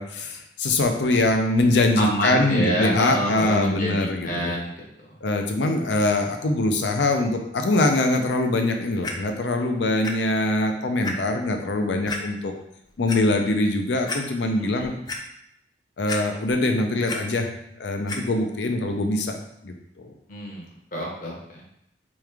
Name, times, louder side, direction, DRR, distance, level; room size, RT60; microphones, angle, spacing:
voice 1, 0.0-4.5 5.2-12.5 13.0-15.0 16.0-17.5 17.8-19.4 19.6-20.1, left 2 dB, 80° left, 4 dB, 0.6 m, -23 dB
voice 2, 2.0-5.2 14.6-14.9 20.3-21.6, equal, 50° left, -2 dB, 1.0 m, -28 dB
Clock, 9.0-9.1 10.0-10.1 10.6-10.7 11.0-11.1 12.1-12.2 12.9-13.2 13.7-13.8 14.1-14.2 14.7-15.2 16.1-16.6 16.9-17.2 18.1-18.2 18.9-19.0, left 3 dB, 25° left, 0.4 m, -31 dB
3.6 x 3.1 x 3.5 m, 0.78 s
head